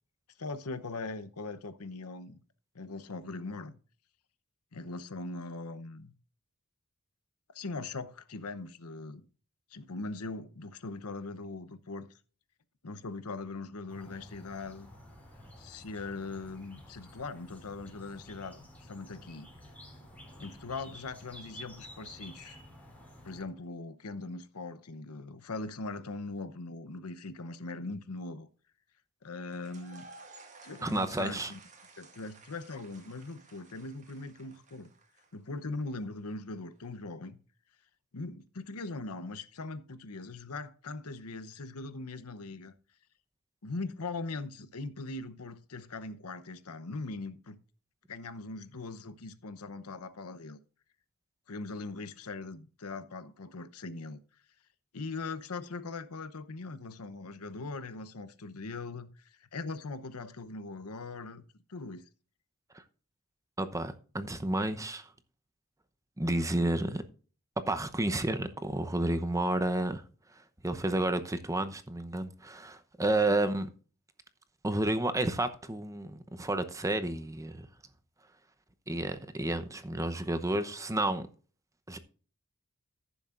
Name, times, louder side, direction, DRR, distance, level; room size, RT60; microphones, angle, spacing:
voice 1, 0.4-2.4 2.7-3.7 4.7-6.1 7.5-9.2 9.7-12.1 12.8-14.9 15.6-19.5 20.4-22.6 23.2-28.5 29.2-30.1 30.6-31.6 32.0-34.9 35.3-37.4 38.1-42.7 43.6-47.6 48.1-50.6 51.5-54.2 54.9-61.4 61.7-62.0, left 3 dB, 75° left, 0.8 m, -40 dB
sound 1, 13.9-23.4, equal, 5° left, 3.3 m, -51 dB
sound 2, 29.5-35.5, right 3 dB, 35° right, 1.8 m, -55 dB
voice 2, 30.8-31.5 63.6-65.1 66.2-67.0 67.7-70.0 70.6-73.7 74.6-77.7 78.9-81.2 81.9-82.0, right 1 dB, 15° right, 0.8 m, -31 dB
14.5 x 7.2 x 2.5 m
head